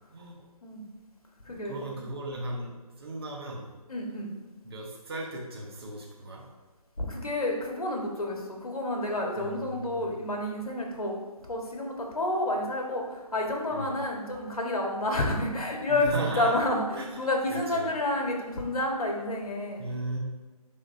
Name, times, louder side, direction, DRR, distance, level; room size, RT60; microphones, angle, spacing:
voice 1, 1.6-2.7 3.0-3.7 4.6-6.4 9.4-10.1 13.7-14.0 15.9-16.5 17.0-17.2 17.5-17.9 19.8-20.2, right 1 dB, 40° right, -2 dB, 1.3 m, -36 dB
voice 2, 3.9-4.3 7.0-11.2 11.5-19.8, left 1 dB, 65° left, 0 dB, 1.7 m, -29 dB
10.5 x 3.8 x 2.7 m, 1.3 s
figure-of-eight pair, 155°, 20 cm